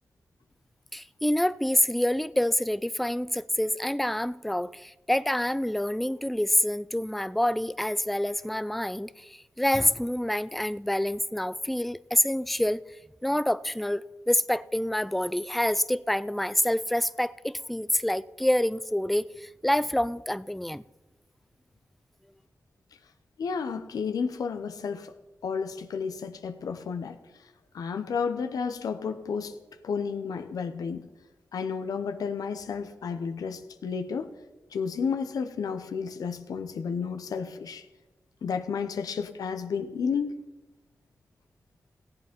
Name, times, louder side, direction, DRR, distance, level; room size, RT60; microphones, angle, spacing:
voice 1, 0.9-12.8 13.2-20.8, left 1 dB, ahead, 0.4 m, -27 dB
voice 2, 23.4-25.1 25.4-27.2 27.7-29.6 29.8-31.0 31.5-34.3 34.7-37.9 38.4-40.3, left 6 dB, 90° left, 0.8 m, -31 dB
16.0 x 8.0 x 5.2 m
cardioid pair, 50°, 6 cm